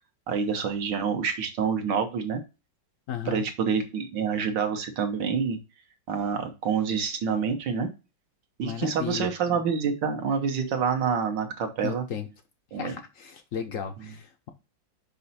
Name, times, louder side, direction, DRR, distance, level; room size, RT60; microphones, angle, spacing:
voice 1, 0.3-2.4 3.3-5.6 6.1-7.9 8.6-12.0 12.7-12.9, right 6 dB, 70° right, 5 dB, 1.7 m, -27 dB
voice 2, 3.1-3.4 8.6-9.3 11.8-12.3 12.7-14.5, left 8 dB, 65° left, 7 dB, 0.8 m, -34 dB
5.5 x 5.4 x 4.1 m, 0.29 s
omnidirectional pair, 2.1 m